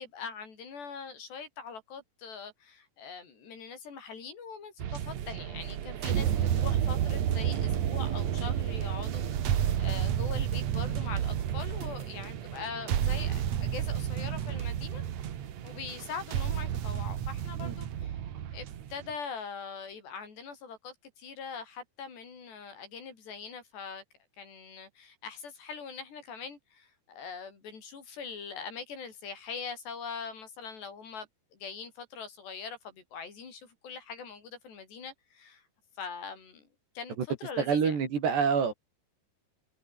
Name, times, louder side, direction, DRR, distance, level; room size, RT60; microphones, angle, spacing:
voice 1, 0.0-15.0 15.6-18.2 18.5-24.0 24.4-35.6 36.0-36.7 37.0-38.0, left 6 dB, 90° left, 7.7 m, -42 dB
sound 1, 4.8-19.1, right 10 dB, 55° right, 2.3 m, -31 dB
voice 2, 37.6-38.7, right 6 dB, 85° right, 6.9 m, -27 dB
omnidirectional pair, 4.7 m